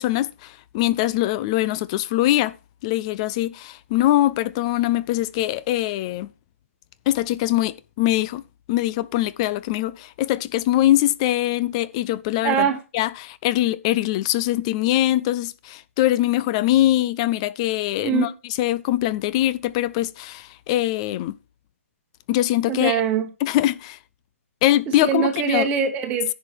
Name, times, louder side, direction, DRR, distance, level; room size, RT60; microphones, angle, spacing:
voice 1, 0.0-2.5 2.8-6.3 7.1-8.4 8.7-12.7 12.9-18.3 18.6-21.3 22.3-23.0 23.4-24.0 24.6-25.7, left 14 dB, 25° left, 0.4 m, -22 dB
voice 2, 12.4-12.8 18.0-18.3 22.7-23.3 24.9-26.3, right 8 dB, 15° right, 1.2 m, -23 dB
10.5 x 5.6 x 6.0 m
hypercardioid pair, 150°, 8 cm